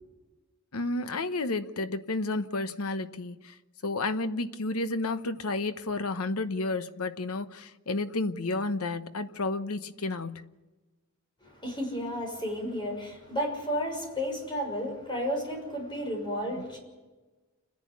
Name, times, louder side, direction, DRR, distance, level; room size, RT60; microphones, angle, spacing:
voice 1, 0.7-3.5 3.8-10.4, left 2 dB, 75° left, 1.0 m, -31 dB
voice 2, 11.4-16.8, equal, 20° left, 6.2 m, -32 dB
29.5 x 10.5 x 8.4 m
head